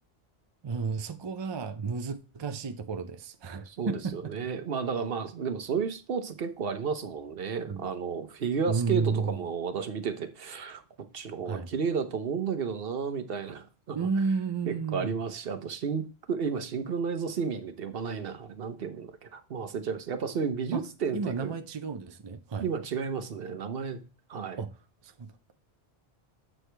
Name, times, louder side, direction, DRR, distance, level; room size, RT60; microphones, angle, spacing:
voice 1, 0.6-4.2 7.7-7.8 8.7-9.4 11.5-11.7 13.9-15.1 20.7-20.8 21.1-22.7 24.6-24.7 25.0-25.3, right 5 dB, 35° right, 0.4 m, -32 dB
voice 2, 3.7-10.8 11.1-14.1 14.7-21.6 22.6-24.0 24.3-24.6, right 6 dB, 65° right, 1.0 m, -32 dB
7.6 x 4.7 x 3.3 m
omnidirectional pair, 1.1 m